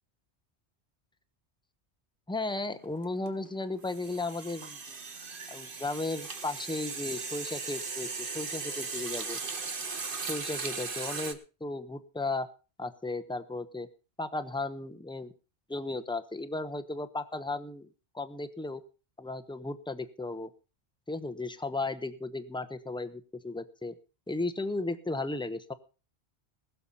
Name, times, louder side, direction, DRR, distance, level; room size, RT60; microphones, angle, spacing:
voice 1, 2.3-5.0 5.5-9.4 10.3-12.5 12.8-13.9 14.2-15.3 15.7-17.9 18.1-18.8 19.2-20.5 21.1-23.9 24.3-25.7, left 2 dB, 5° left, 9 dB, 0.9 m, -35 dB
sound 1, 2.5-2.7 3.0-11.3, right 4 dB, 50° right, 1.5 m, -38 dB
20.0 x 6.9 x 5.6 m, 0.35 s
omnidirectional pair, 1.2 m